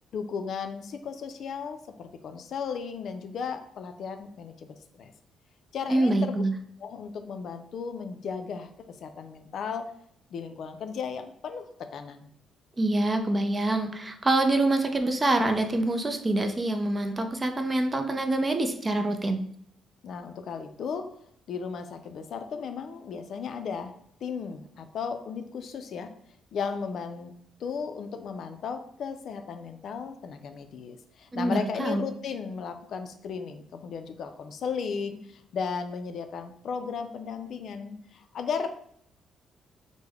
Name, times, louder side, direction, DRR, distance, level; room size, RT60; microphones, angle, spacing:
voice 1, 0.1-5.1 5.7-6.4 6.8-8.7 9.0-9.9 10.3-12.3 20.0-21.1 21.5-23.9 24.2-26.1 26.5-27.3 27.6-38.7, left 6 dB, 65° left, 8 dB, 0.3 m, -35 dB
voice 2, 5.9-6.5 12.8-19.4 31.3-32.0, right 2 dB, 25° right, 6 dB, 0.4 m, -25 dB
3.4 x 2.1 x 3.4 m, 0.67 s
cardioid pair, 90°, 0 cm